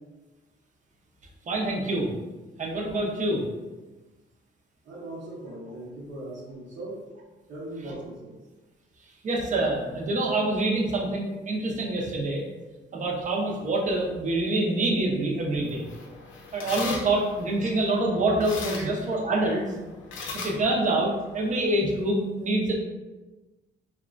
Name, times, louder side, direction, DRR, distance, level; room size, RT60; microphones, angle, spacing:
voice 1, 1.5-2.1 2.6-3.4 7.8-7.9 9.2-12.4 12.9-15.8 16.5-19.6 20.3-22.7, right 2 dB, 40° right, -1 dB, 0.6 m, -26 dB
voice 2, 4.8-7.0 7.5-8.4 17.6-17.7, right 1 dB, 65° right, -9 dB, 0.9 m, -39 dB
sound 1, 15.5-21.6, left 3 dB, 75° left, 0.5 m, -40 dB
2.8 x 2.2 x 2.4 m, 1.2 s
cardioid pair, 90°, 20 cm